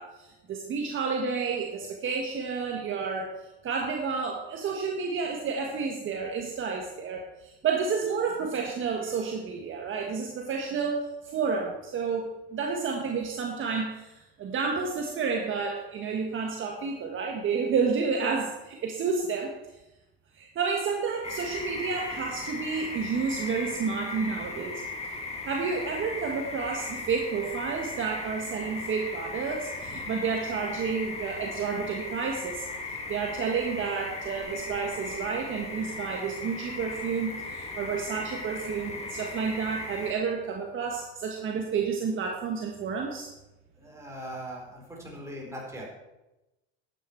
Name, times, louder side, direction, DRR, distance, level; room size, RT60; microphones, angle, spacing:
voice 1, 0.0-3.3 3.6-19.5 20.3-24.8 25.4-32.7 33.1-43.3, right 5 dB, 40° right, 1 dB, 1.6 m, -30 dB
sound 1, 21.2-40.1, left 3 dB, 20° left, 2.2 m, -37 dB
voice 2, 43.8-45.9, equal, 10° right, -2 dB, 4.2 m, -40 dB
11.5 x 9.2 x 4.6 m, 0.98 s
supercardioid pair, 115°, 30 cm